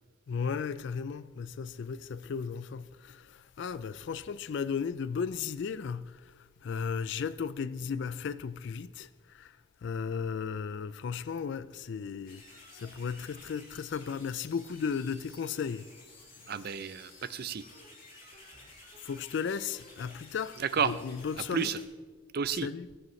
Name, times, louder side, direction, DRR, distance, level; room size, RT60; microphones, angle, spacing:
voice 1, 0.3-12.4 12.7-15.9 16.4-16.6 19.0-21.7 22.5-22.9, left 6 dB, 60° left, 0.3 m, -35 dB
sound 1, 12.3-21.9, left 2 dB, 45° left, 2.9 m, -53 dB
voice 2, 16.5-17.6 20.6-20.9 21.5-21.8 22.3-22.7, right 6 dB, 50° right, 0.5 m, -31 dB
20.0 x 7.8 x 3.2 m
head